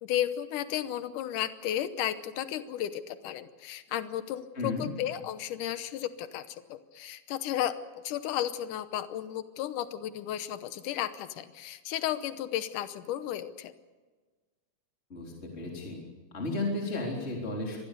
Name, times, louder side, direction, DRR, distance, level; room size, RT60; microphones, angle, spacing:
voice 1, 0.0-7.8 8.0-13.7, left 11 dB, 90° left, 11 dB, 2.5 m, -33 dB
voice 2, 4.6-4.9 15.1-16.0 16.3-17.8, left 2 dB, 20° left, -1 dB, 3.9 m, -33 dB
25.0 x 19.5 x 6.8 m, 1.3 s
omnidirectional pair, 3.6 m